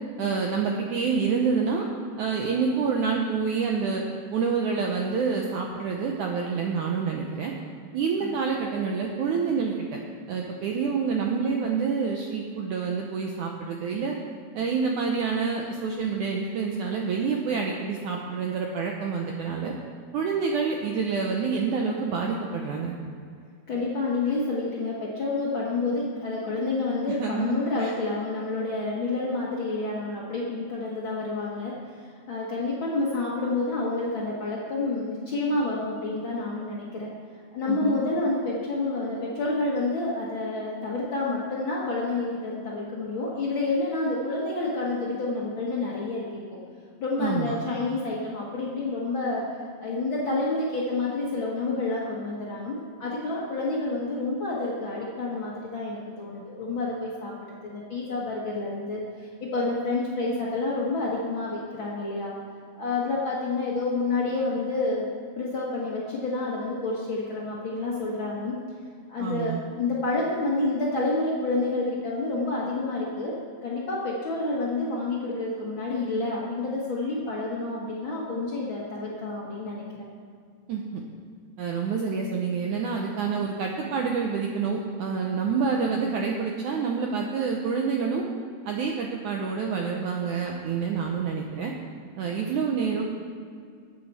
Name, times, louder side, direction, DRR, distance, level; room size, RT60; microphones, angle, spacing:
voice 1, 0.2-1.9 2.2-4.0 4.3-7.5 7.9-10.0 10.3-14.1 14.6-19.7 20.1-22.9 27.1-27.9 37.7-38.0 47.2-47.5 69.2-69.6 80.7-81.0 81.6-88.2 88.7-91.7 92.2-93.0, right 5 dB, 80° right, 0 dB, 1.7 m, -27 dB
voice 2, 23.7-37.1 37.5-46.6 47.0-49.4 49.8-62.3 62.7-65.0 65.4-68.5 69.1-73.3 73.6-79.8, left 2 dB, 90° left, -5 dB, 1.1 m, -29 dB
19.5 x 8.3 x 4.2 m, 2.1 s
omnidirectional pair, 4.6 m